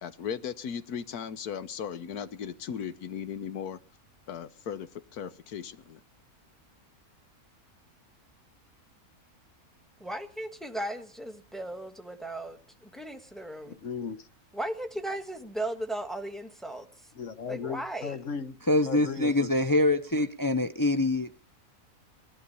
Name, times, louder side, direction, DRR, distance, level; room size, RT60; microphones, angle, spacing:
voice 1, 0.0-3.8 4.3-6.0, left 7 dB, 90° left, 1.5 m, -37 dB
voice 2, 10.0-13.8 14.5-16.9 17.5-18.2, right 1 dB, ahead, 1.4 m, -36 dB
voice 3, 13.6-14.3 17.2-18.6 18.8-19.5, left 6 dB, 60° left, 1.4 m, -36 dB
voice 4, 18.7-21.4, left 2 dB, 20° left, 0.6 m, -25 dB
19.0 x 11.5 x 5.5 m
omnidirectional pair, 1.6 m